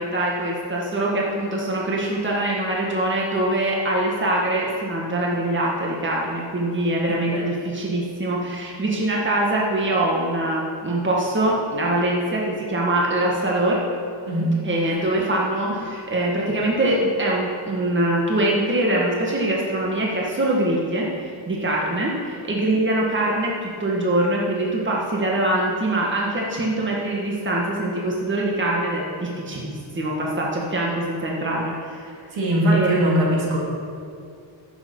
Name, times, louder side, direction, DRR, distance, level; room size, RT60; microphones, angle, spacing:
voice 1, 0.0-13.8 14.6-32.1 32.7-33.1, right 1 dB, 25° right, -3 dB, 1.7 m, -23 dB
voice 2, 32.3-33.6, right 1 dB, 75° right, -3 dB, 2.9 m, -20 dB
11.0 x 8.1 x 5.5 m, 2.4 s
wide cardioid pair, 120°, 46 cm